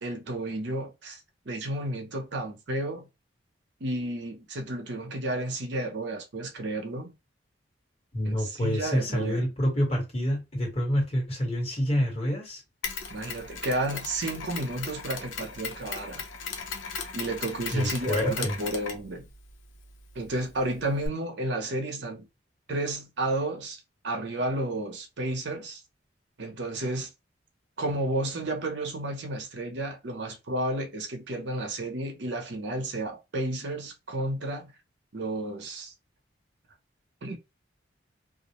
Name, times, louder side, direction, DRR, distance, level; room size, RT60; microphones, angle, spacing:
voice 1, 0.0-1.2 1.5-3.1 3.8-7.1 8.3-9.5 13.1-16.2 17.1-19.3 20.1-22.3 22.7-25.8 26.4-27.1 27.8-34.7 35.1-35.9 37.2-37.4, right 1 dB, 65° right, 0.6 m, -32 dB
voice 2, 8.1-12.6 17.7-18.5, equal, 35° left, 1.3 m, -27 dB
Mechanisms, 12.8-21.1, left 5 dB, 85° left, 0.6 m, -38 dB
2.4 x 2.0 x 2.9 m
head